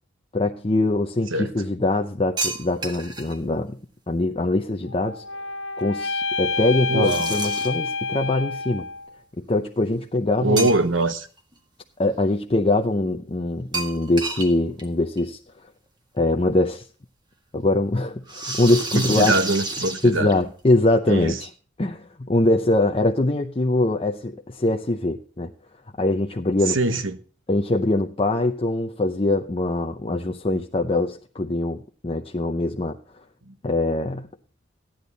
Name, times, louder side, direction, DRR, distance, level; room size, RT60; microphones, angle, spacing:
voice 1, 0.3-3.8 4.1-5.2 5.8-8.9 9.4-10.7 12.0-15.4 16.1-16.9 17.5-19.3 20.0-21.5 21.8-25.5 26.0-26.8 27.5-33.0 33.6-34.3, left 2 dB, 30° left, 0.7 m, -23 dB
sound 1, 2.4-3.4 7.0-7.9 10.6-11.1 11.5-11.6 13.7-14.5 14.8-14.9 15.2-15.3 16.5-16.6 18.3-20.6, right 3 dB, 25° right, 1.7 m, -30 dB
sound 2, 4.9-9.2, left 4 dB, 80° left, 0.6 m, -28 dB
voice 2, 6.9-7.3 10.4-11.3 18.9-20.3 21.1-21.4 26.7-27.2 33.5-33.6, right 2 dB, 85° right, 1.2 m, -23 dB
14.0 x 10.5 x 4.0 m
head